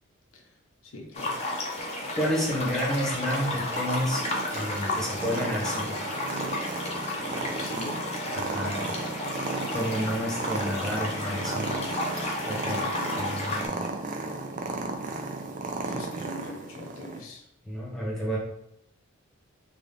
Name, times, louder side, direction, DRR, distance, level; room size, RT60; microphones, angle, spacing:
voice 1, 0.8-1.4 7.4-8.1 9.2-9.7 13.0-14.0 15.8-17.5, left 2 dB, 75° left, 1 dB, 0.7 m, -43 dB
sound 1, 1.1-13.7, left 1 dB, 30° left, 0.6 m, -32 dB
voice 2, 2.1-4.2 4.5-6.0 8.3-8.9 9.7-11.8 12.5-12.8 13.2-13.9 17.6-18.4, equal, ahead, -5 dB, 0.9 m, -30 dB
Purr, 3.3-17.2, right 3 dB, 35° right, 0.4 m, -35 dB
3.5 x 2.4 x 3.7 m, 0.77 s
head